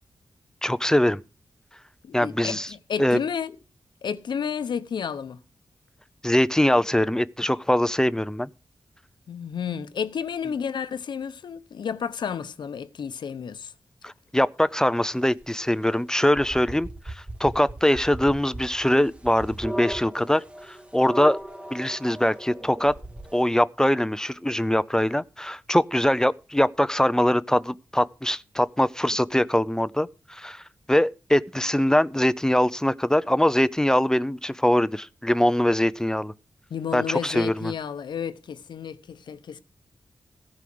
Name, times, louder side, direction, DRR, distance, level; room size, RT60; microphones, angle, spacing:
voice 1, 0.6-1.2 2.1-2.7 3.0-3.2 6.2-8.5 14.0-21.4 21.7-22.9 23.3-36.3 36.9-37.7, left 1 dB, 10° left, 0.5 m, -22 dB
voice 2, 2.0-3.6 4.0-5.4 9.3-13.7 36.7-39.6, left 7 dB, 90° left, 0.8 m, -31 dB
sound 1, 15.4-15.5 16.4-23.4, right 1 dB, 15° right, 1.3 m, -37 dB
14.5 x 4.9 x 7.7 m
wide cardioid pair, 80°, 8 cm